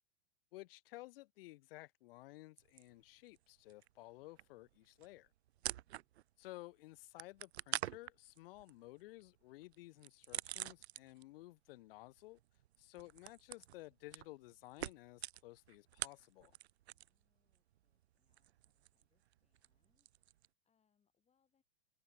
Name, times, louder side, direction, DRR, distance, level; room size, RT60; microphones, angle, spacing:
voice 1, 0.5-5.3 6.4-12.4 12.8-16.6, left 19 dB, 60° left, 0.5 m, -55 dB
sound 1, 2.6-3.4 3.7-6.4 6.7-11.4 11.7-17.2 17.5-20.5, right 13 dB, 80° right, 0.7 m, -47 dB
voice 2, 5.6-6.2 16.9-21.6, left 7 dB, 20° left, 6.1 m, -86 dB
hypercardioid pair, 125°, 32 cm